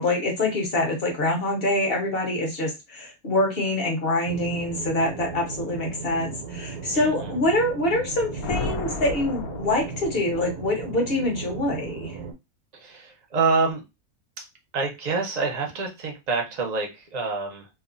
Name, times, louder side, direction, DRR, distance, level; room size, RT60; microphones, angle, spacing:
voice 1, 0.0-12.1, left 1 dB, 45° left, 1 dB, 1.0 m, -25 dB
sound 1, 4.3-12.3, right 5 dB, 80° right, 1.2 m, -36 dB
voice 2, 6.9-7.3 12.7-13.8 14.7-17.7, right 4 dB, 40° right, 1 dB, 0.6 m, -27 dB
sound 2, 8.0-10.6, left 4 dB, 75° left, 1.0 m, -33 dB
2.9 x 2.4 x 2.5 m, 0.23 s
omnidirectional pair, 1.6 m